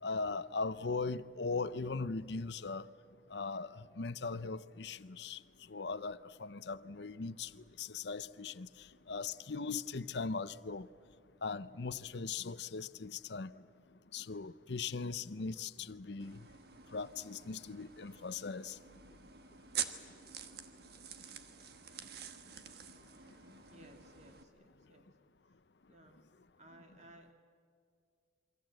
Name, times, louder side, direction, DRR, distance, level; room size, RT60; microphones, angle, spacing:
voice 1, 0.0-2.9 3.3-5.4 5.7-10.9 11.4-13.5 14.1-16.4 16.9-18.8, left 4 dB, 65° left, 0.7 m, -39 dB
sound 1, 16.2-24.4, right 8 dB, 55° right, 1.4 m, -46 dB
voice 2, 23.7-25.1 25.5-25.6 25.9-26.2 26.6-27.3, right 1 dB, 40° right, 2.6 m, -59 dB
28.0 x 23.5 x 7.8 m
head